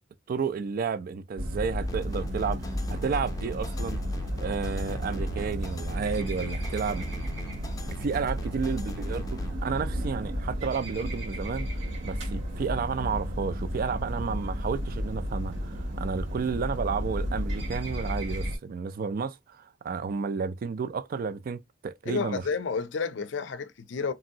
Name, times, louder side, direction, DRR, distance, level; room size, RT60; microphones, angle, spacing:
voice 1, 0.3-4.0 4.4-7.1 7.9-22.4, right 5 dB, 50° right, 0.3 m, -32 dB
sound 1, 1.4-18.6, equal, 75° right, 1.9 m, -33 dB
sound 2, 1.9-9.5, right 1 dB, 20° left, 0.5 m, -40 dB
voice 2, 22.0-24.1, left 5 dB, 75° left, 0.5 m, -31 dB
3.0 x 2.6 x 2.6 m
head